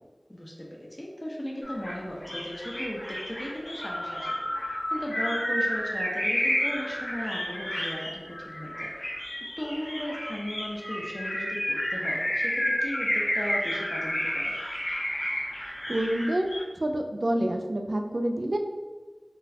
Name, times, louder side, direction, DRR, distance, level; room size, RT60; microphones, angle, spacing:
voice 1, 0.3-4.3 4.9-8.9 9.6-14.5, equal, 25° left, -3 dB, 0.6 m, -36 dB
sound 1, 1.6-16.6, equal, 70° left, 1.1 m, -31 dB
voice 2, 15.9-16.5 16.7-18.6, right 1 dB, 65° right, 4 dB, 0.3 m, -27 dB
3.9 x 2.3 x 2.7 m, 1.3 s
wide cardioid pair, 45°, 0 cm